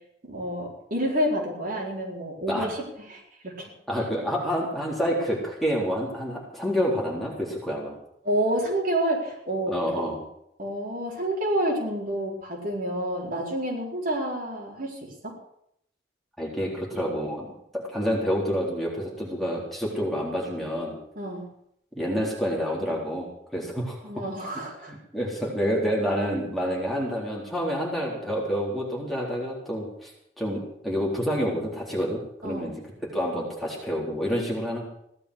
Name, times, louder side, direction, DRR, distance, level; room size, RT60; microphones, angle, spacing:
voice 1, 0.2-2.8 3.1-3.7 8.2-9.7 10.6-15.0 15.2-15.3 21.2-21.4 24.0-24.9 32.4-32.6, right 1 dB, 50° right, -2 dB, 4.5 m, -28 dB
voice 2, 3.9-7.9 9.7-10.2 16.4-21.0 21.9-24.0 24.9-30.1 30.4-32.7 33.1-34.8, equal, ahead, -4 dB, 3.9 m, -28 dB
16.5 x 12.0 x 6.4 m, 0.75 s
head